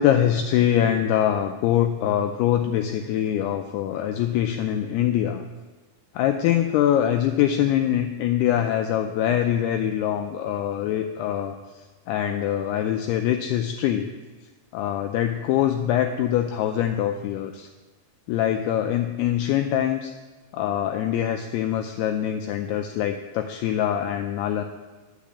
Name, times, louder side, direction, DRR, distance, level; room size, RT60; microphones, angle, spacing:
voice 1, 0.0-5.4 6.1-14.1 14.7-17.7 18.3-20.1 20.5-24.6, left 10 dB, 90° left, 5 dB, 2.3 m, -24 dB
10.5 x 6.5 x 8.3 m, 1.3 s
omnidirectional pair, 5.2 m